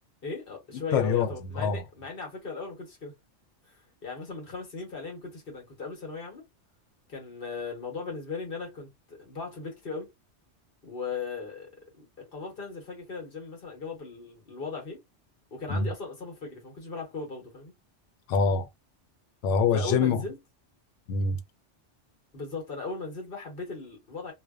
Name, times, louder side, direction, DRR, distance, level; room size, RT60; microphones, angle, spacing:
voice 1, 0.2-3.1 3.7-3.8 4.0-6.4 7.1-10.1 10.8-11.7 12.0-15.0 15.5-17.7 19.7-20.4 22.3-24.3, left 4 dB, 50° left, 1.1 m, -38 dB
voice 2, 0.9-1.3 1.5-1.8 15.7-15.9 18.3-18.7 19.4-20.2 21.1-21.4, left 5 dB, 80° left, 0.9 m, -24 dB
2.5 x 2.1 x 2.3 m
omnidirectional pair, 1.2 m